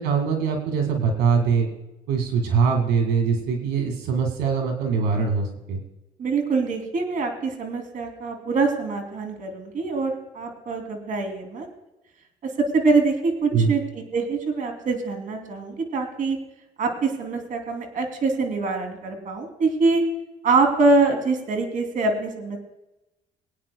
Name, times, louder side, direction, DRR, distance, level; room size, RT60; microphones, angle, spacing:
voice 1, 0.0-1.7 2.1-5.8 13.5-13.7, right 5 dB, 90° right, 3 dB, 2.2 m, -22 dB
voice 2, 6.2-11.7 12.7-16.4 16.8-20.0 20.4-22.6, right 3 dB, 50° right, 3 dB, 3.0 m, -24 dB
24.0 x 9.4 x 2.3 m, 0.96 s
cardioid pair, 110°, 17 cm